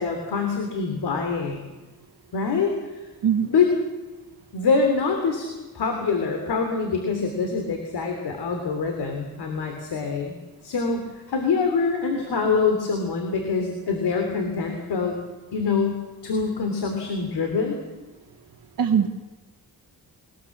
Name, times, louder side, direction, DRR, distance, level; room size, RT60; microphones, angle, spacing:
voice 1, 0.0-1.6 2.3-2.7 3.5-3.7 4.5-5.5 5.7-10.4 10.6-15.1 15.5-17.8, left 5 dB, 90° left, 4 dB, 3.3 m, -25 dB
voice 2, 3.2-3.5 18.8-19.1, right 8 dB, 65° right, 1 dB, 1.5 m, -20 dB
22.0 x 20.0 x 7.3 m, 1.2 s
wide cardioid pair, 160°, 38 cm